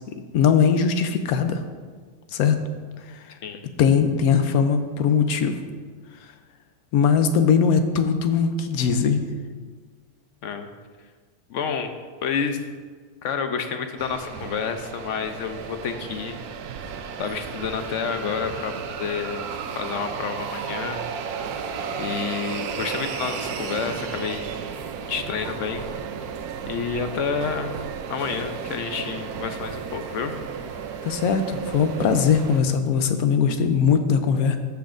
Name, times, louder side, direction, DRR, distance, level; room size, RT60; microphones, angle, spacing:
voice 1, 0.3-1.6 2.3-2.6 3.1-3.3 3.8-5.6 6.9-9.3 31.0-34.6, left 6 dB, 85° left, 8 dB, 1.1 m, -20 dB
voice 2, 11.5-11.9 12.2-12.7 13.2-16.4 17.2-18.7 19.0-19.5 19.7-21.1 22.0-24.5 25.1-25.9 26.7-27.7 28.1-30.3, left 6 dB, 65° left, 7 dB, 0.9 m, -29 dB
sound 1, 14.0-32.6, right 7 dB, 85° right, 1.1 m, -33 dB
15.0 x 5.9 x 2.5 m, 1.6 s
omnidirectional pair, 1.5 m